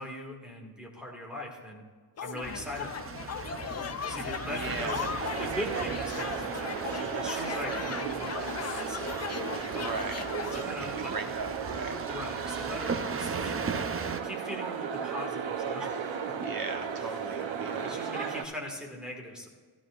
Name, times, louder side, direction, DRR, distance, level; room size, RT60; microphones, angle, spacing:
voice 1, 0.0-1.8 2.2-3.4 3.7-9.3 9.6-9.9 10.5-11.3 11.8-13.8 14.2-16.4 16.9-17.3 17.8-19.5, left 1 dB, ahead, -1 dB, 1.9 m, -41 dB
sound 1, 2.2-10.6, left 7 dB, 35° left, 0.4 m, -38 dB
sound 2, 2.4-14.2, right 5 dB, 30° right, 0.5 m, -39 dB
voice 2, 4.5-5.1 9.7-10.3 10.6-12.0 16.4-18.2, right 4 dB, 50° right, 5 dB, 1.1 m, -37 dB
sound 3, 5.2-18.4, right 7 dB, 75° right, 0.9 m, -35 dB
14.0 x 14.0 x 2.5 m, 1.5 s
wide cardioid pair, 165°, 45 cm